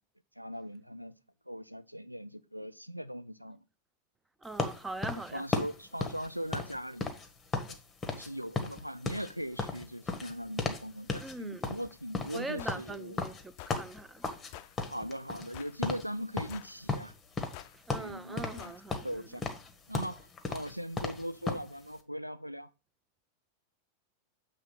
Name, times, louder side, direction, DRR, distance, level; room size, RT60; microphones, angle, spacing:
voice 1, 0.4-1.1 1.5-3.6 5.1-7.1 7.7-7.8 8.1-13.3 14.9-17.1 18.0-19.4 19.9-22.7, equal, 90° right, 0.4 m, -40 dB
voice 2, 4.4-5.4 11.2-11.7 12.3-14.3 17.7-19.3, right 2 dB, 10° right, 0.5 m, -42 dB
sound 1, 4.6-7.8 8.0-8.3 8.5-10.8 11.1-11.3 11.6-14.5 14.8-15.6 15.8-16.1 16.4-17.6 17.9-18.6 18.9-21.7, left 4 dB, 15° left, 1.1 m, -35 dB
sound 2, 12.6-12.8 13.6-13.8 14.5-14.8 15.5-15.8 16.5-16.8 17.5-17.8 18.6-18.8, left 14 dB, 45° left, 0.4 m, -47 dB
7.5 x 3.2 x 5.9 m
figure-of-eight pair, 90°, 0 cm